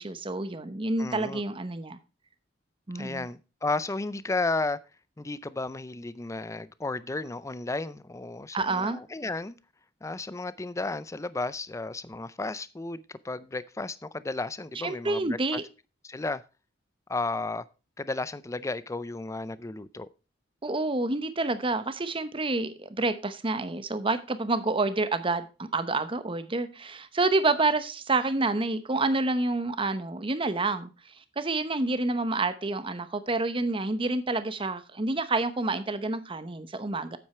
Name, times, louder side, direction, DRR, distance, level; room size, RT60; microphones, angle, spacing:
voice 1, 0.0-2.0 2.9-3.3 8.5-9.0 14.8-15.6 20.6-30.9 31.4-37.2, right 3 dB, 30° right, 0.9 m, -28 dB
voice 2, 1.0-1.4 2.9-4.8 5.2-9.6 10.0-15.6 16.0-16.4 17.1-17.6 18.0-20.1, left 3 dB, 15° left, 0.4 m, -33 dB
8.8 x 7.9 x 4.4 m
head